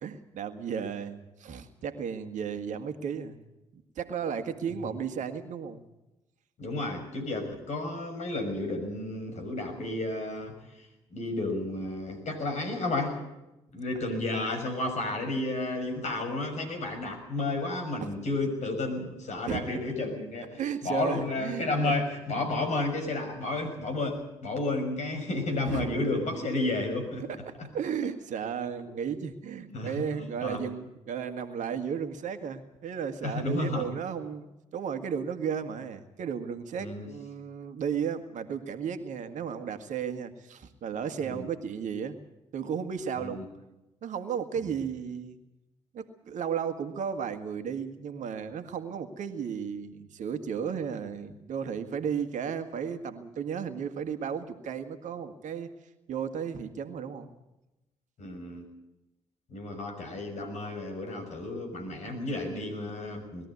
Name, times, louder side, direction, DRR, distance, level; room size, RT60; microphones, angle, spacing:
voice 1, 0.0-3.4 3.7-5.8 13.7-13.8 18.0-18.1 19.5-19.6 20.5-21.9 22.4-22.5 25.7-25.8 27.2-42.2 42.5-43.4 44.0-45.4 45.9-55.7 56.1-57.3, right 7 dB, 60° right, 9 dB, 1.8 m, -34 dB
voice 2, 6.6-13.2 13.7-20.5 20.8-27.2 29.7-30.6 33.2-33.9 36.8-37.1 41.2-41.5 43.2-43.4 58.2-58.6 59.5-63.5, left 2 dB, 55° left, 5 dB, 6.3 m, -32 dB
21.0 x 13.5 x 9.7 m, 0.97 s
hypercardioid pair, 50°, 14 cm